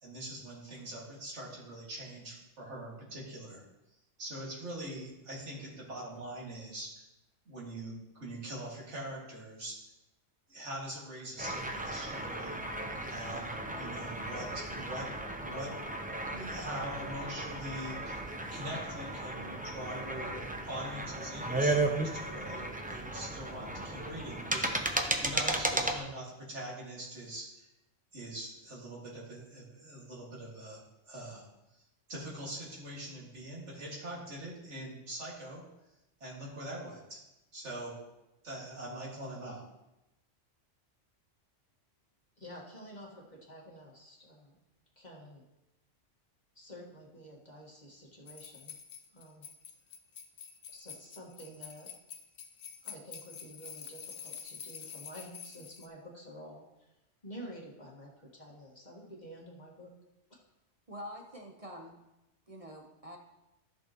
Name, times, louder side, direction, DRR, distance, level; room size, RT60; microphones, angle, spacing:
voice 1, 0.0-3.6 4.2-7.1 7.5-9.9 10.5-12.6 13.1-15.1 15.4-15.8 16.3-18.2 18.5-24.9 25.2-27.7 28.1-31.8 32.1-35.6 36.2-37.2 37.5-38.0 38.4-39.6, right 1 dB, 70° right, -4 dB, 2.4 m, -43 dB
sound 1, 11.4-26.0, right 2 dB, 10° right, 0.4 m, -35 dB
voice 2, 42.4-44.6 45.0-45.5 46.6-48.8 49.1-49.5 50.7-51.9 52.8-56.9 57.2-59.9, equal, 35° left, -2 dB, 1.7 m, -49 dB
sound 2, 48.3-55.9, left 7 dB, 85° left, 1.1 m, -47 dB
voice 3, 60.9-62.0 62.5-63.2, equal, 30° right, 1 dB, 0.9 m, -46 dB
14.0 x 6.2 x 2.9 m, 0.93 s
omnidirectional pair, 1.3 m